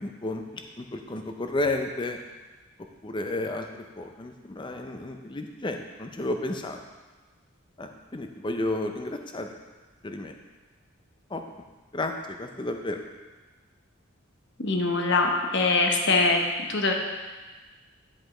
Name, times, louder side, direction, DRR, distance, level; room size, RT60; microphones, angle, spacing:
voice 1, 0.0-2.2 3.0-6.8 7.8-9.5 10.0-10.3 11.3-11.4 11.9-13.0, left 2 dB, 25° left, 5 dB, 0.5 m, -32 dB
voice 2, 14.6-16.4 16.7-16.9, left 3 dB, 60° left, 2 dB, 0.9 m, -23 dB
10.0 x 5.1 x 3.8 m, 1.3 s
head